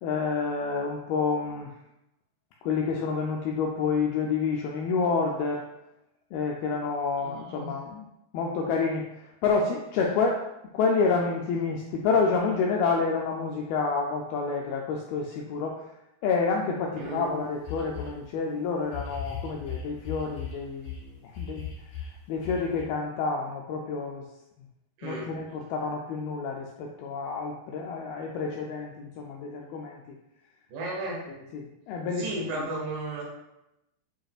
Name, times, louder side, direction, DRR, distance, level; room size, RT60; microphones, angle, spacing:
voice 1, 0.0-1.8 2.6-5.6 6.3-8.1 8.3-10.4 10.7-15.9 16.2-21.7 22.3-24.3 25.0-30.2 31.3-32.7, left 4 dB, 85° left, 0 dB, 2.1 m, -29 dB
voice 2, 7.2-7.7 17.0-17.4 25.0-25.3 30.7-31.2 32.2-33.2, right 2 dB, 60° right, -4 dB, 3.1 m, -34 dB
sound 1, 17.0-17.1 17.7-18.2 18.9-21.0 21.3-22.8, left 6 dB, 65° left, 3.9 m, -37 dB
8.9 x 5.1 x 2.4 m, 0.88 s
omnidirectional pair, 5.0 m